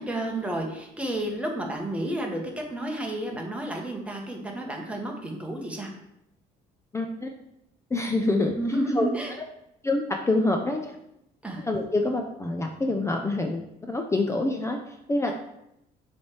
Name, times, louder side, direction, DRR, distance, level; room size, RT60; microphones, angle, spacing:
voice 1, 0.0-5.9 8.3-9.3 11.4-11.7, right 1 dB, 5° right, 0 dB, 1.4 m, -31 dB
voice 2, 6.9-7.3 7.9-8.5 9.0-9.1 9.8-11.0 11.6-15.3, left 2 dB, 15° left, 3 dB, 0.6 m, -26 dB
6.8 x 3.4 x 4.7 m, 0.82 s
cardioid pair, 110°, 17 cm